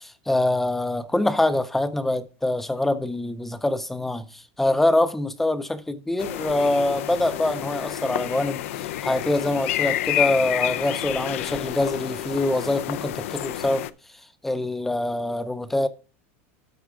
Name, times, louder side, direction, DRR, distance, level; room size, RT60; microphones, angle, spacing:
voice 1, 0.0-8.6 9.0-13.9 14.4-15.9, left 1 dB, 5° left, 0.4 m, -24 dB
sound 1, 6.2-13.9, left 14 dB, 85° left, 0.5 m, -29 dB
12.5 x 4.7 x 3.6 m
supercardioid pair, 175°, 7 cm